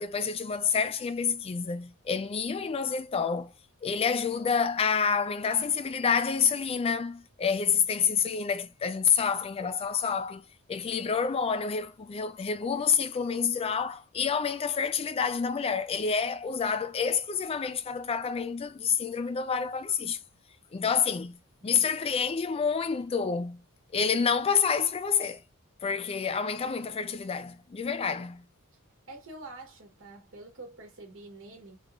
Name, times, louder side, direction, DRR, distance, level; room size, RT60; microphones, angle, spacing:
voice 1, 0.0-3.5 3.8-20.2 20.7-23.6 23.9-25.4 25.8-28.4, left 6 dB, 25° left, 0.3 m, -28 dB
voice 2, 29.1-31.8, right 2 dB, 60° right, 1.2 m, -46 dB
3.6 x 3.0 x 2.5 m
head